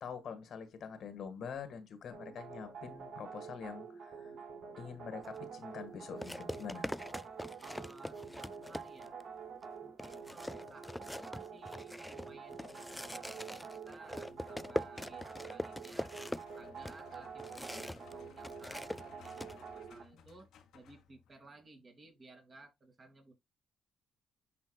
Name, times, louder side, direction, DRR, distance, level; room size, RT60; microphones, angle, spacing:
voice 1, 0.0-4.3 4.8-6.9, left 6 dB, 65° left, 1.7 m, -45 dB
sound 1, 2.1-20.0, right 6 dB, 70° right, 4.2 m, -48 dB
sound 2, 5.2-5.4 6.2-9.2 9.6-9.7 10.0-18.1 18.4-19.6, left 1 dB, 5° left, 0.3 m, -42 dB
voice 2, 7.6-9.1 9.8-16.1 16.6-23.3, right 2 dB, 35° right, 2.6 m, -58 dB
sound 3, 13.9-21.5, left 8 dB, 80° left, 1.4 m, -61 dB
10.5 x 4.2 x 2.3 m
cardioid pair, 90°, 0 cm